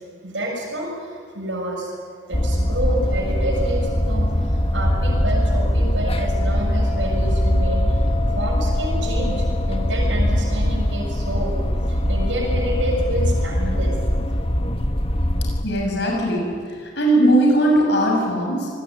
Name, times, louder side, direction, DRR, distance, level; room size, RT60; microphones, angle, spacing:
voice 1, 0.2-1.1 1.3-1.9 2.3-8.1 8.3-11.5 11.9-13.9, right 1 dB, 90° right, 1 dB, 6.7 m, -28 dB
sound 1, 2.3-15.6, equal, 30° left, 1.6 m, -21 dB
voice 2, 15.6-16.4 17.0-18.7, right 1 dB, 70° left, -1 dB, 6.9 m, -18 dB
26.0 x 20.5 x 9.9 m, 2.2 s
head